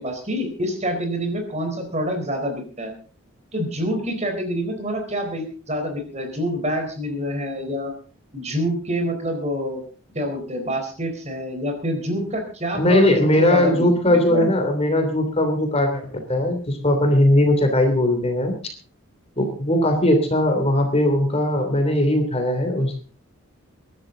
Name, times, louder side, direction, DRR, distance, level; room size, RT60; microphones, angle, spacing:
voice 1, 0.0-2.9 3.5-7.9 8.3-9.8 10.1-13.1 13.4-13.9 14.3-14.5, equal, 30° right, 5 dB, 4.1 m, -26 dB
voice 2, 12.7-18.5 19.4-23.0, left 1 dB, 25° left, 5 dB, 3.0 m, -19 dB
22.5 x 12.0 x 3.9 m, 0.38 s
head